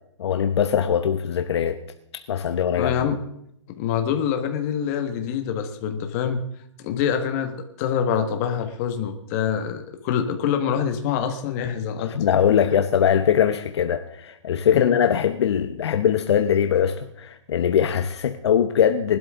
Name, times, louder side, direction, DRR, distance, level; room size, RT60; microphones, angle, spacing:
voice 1, 0.2-1.8 2.1-3.1 12.1-19.2, left 8 dB, 55° left, 8 dB, 1.0 m, -21 dB
voice 2, 2.8-3.2 3.7-6.4 6.8-12.1 14.7-15.0, left 8 dB, 30° left, 6 dB, 1.6 m, -25 dB
21.0 x 12.0 x 3.7 m, 0.75 s
hypercardioid pair, 150°, 16 cm